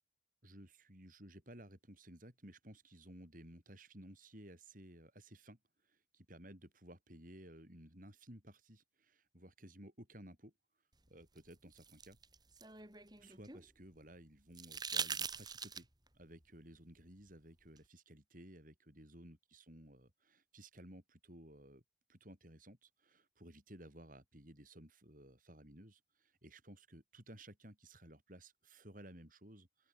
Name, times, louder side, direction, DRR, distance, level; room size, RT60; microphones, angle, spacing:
voice 1, 0.4-5.6 5.8-10.5 11.1-12.2 13.2-15.9 16.1-21.8 22.1-29.9, right 1 dB, 45° right, 7.0 m, -56 dB
sound 1, 11.4-13.6 14.5-16.1 17.8-17.9, right 6 dB, 20° right, 4.8 m, -42 dB
open air
head